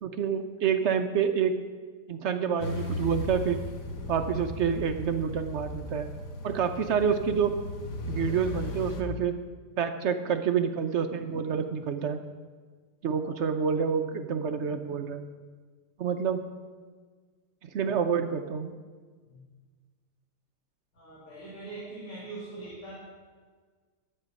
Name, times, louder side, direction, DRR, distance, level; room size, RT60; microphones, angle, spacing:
voice 1, 0.0-1.6 2.1-3.6 4.1-6.1 6.4-7.5 8.1-9.4 9.8-12.2 13.0-15.2 16.0-16.5 17.6-18.7, right 7 dB, 65° right, 8 dB, 0.7 m, -28 dB
sound 1, 2.6-9.0, left 2 dB, 85° left, 1.6 m, -36 dB
voice 2, 20.9-22.9, right 3 dB, 55° left, -6 dB, 2.6 m, -42 dB
10.5 x 8.9 x 5.2 m, 1.5 s
omnidirectional pair, 1.7 m